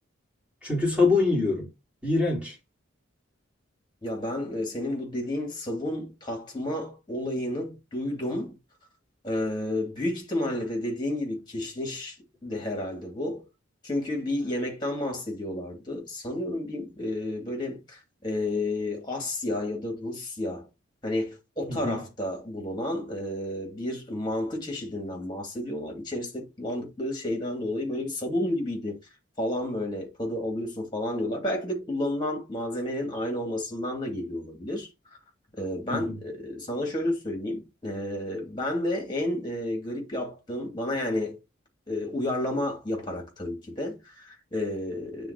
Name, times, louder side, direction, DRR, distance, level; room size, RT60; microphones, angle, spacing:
voice 1, 0.6-1.7 2.0-2.6 21.7-22.0 35.9-36.2, left 3 dB, 5° right, 3.9 m, -24 dB
voice 2, 4.0-8.6 9.2-12.1 12.4-13.5 13.8-20.7 21.0-29.0 29.4-34.9 35.6-41.4 41.9-45.3, left 1 dB, 20° left, 2.6 m, -31 dB
9.3 x 3.9 x 2.9 m
head